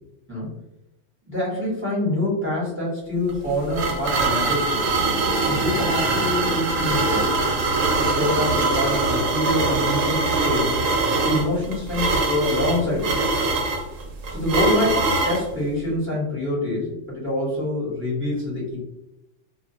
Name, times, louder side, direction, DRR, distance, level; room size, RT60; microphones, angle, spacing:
voice 1, 1.3-4.9 5.5-7.3 8.0-10.8 11.2-13.3 14.3-18.8, left 1 dB, 10° right, -6 dB, 0.8 m, -26 dB
sound 1, 3.3-15.4, right 3 dB, 80° right, 1.0 m, -22 dB
2.2 x 2.2 x 2.6 m, 0.93 s
omnidirectional pair, 1.3 m